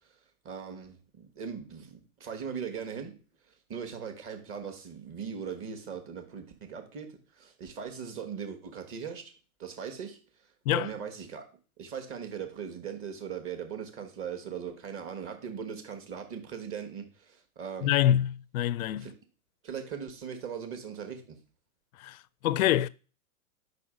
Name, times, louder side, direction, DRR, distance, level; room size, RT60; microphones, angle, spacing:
voice 1, 0.4-3.1 3.7-7.1 7.3-9.2 9.6-10.2 10.7-11.4 11.8-17.9 19.0-19.1 19.6-21.4, right 7 dB, 30° right, 1.4 m, -39 dB
voice 2, 17.8-19.1 22.0-22.2 22.4-22.9, left 12 dB, 70° left, 0.5 m, -25 dB
5.3 x 4.2 x 5.0 m
hypercardioid pair, 110°, 44 cm